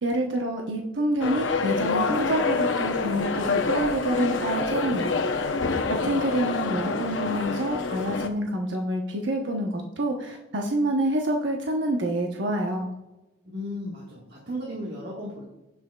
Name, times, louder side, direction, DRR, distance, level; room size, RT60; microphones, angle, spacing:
voice 1, 0.0-5.1 5.9-12.9, right 1 dB, 75° right, 1 dB, 1.0 m, -27 dB
sound 1, 1.2-8.3, left 4 dB, 85° left, 0.8 m, -27 dB
voice 2, 5.7-6.2 13.5-15.5, equal, 55° right, -5 dB, 1.7 m, -36 dB
16.0 x 6.1 x 2.3 m, 1.0 s
head